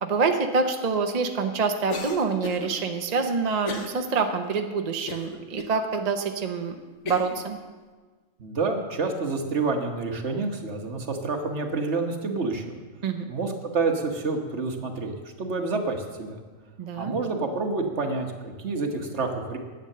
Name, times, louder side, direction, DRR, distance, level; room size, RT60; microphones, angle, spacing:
voice 1, 0.0-6.8 7.0-7.6 13.0-13.3 16.8-17.1, right 4 dB, 40° right, 5 dB, 0.7 m, -26 dB
Cough, 1.9-2.7 3.6-4.0 4.4-4.5 5.1-5.7 6.3-6.4 7.1-7.4, left 3 dB, 65° left, 1.4 m, -35 dB
voice 2, 8.4-12.8 13.3-16.4 17.0-19.6, right 3 dB, 60° right, 3 dB, 1.5 m, -28 dB
10.5 x 8.1 x 6.7 m, 1.4 s
omnidirectional pair, 1.4 m